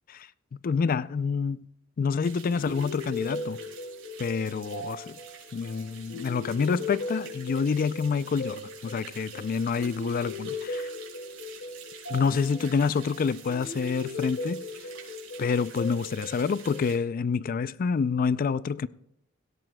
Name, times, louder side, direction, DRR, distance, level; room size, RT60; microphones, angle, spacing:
voice 1, 0.1-1.7 2.0-3.6 4.2-5.0 5.5-10.9 12.1-14.6 15.4-18.9, left 5 dB, 45° left, 0.3 m, -27 dB
sound 1, 2.2-17.0, right 7 dB, 90° right, 4.3 m, -48 dB
sound 2, 2.4-17.2, left 2 dB, 65° left, 2.4 m, -38 dB
17.0 x 16.5 x 2.2 m
head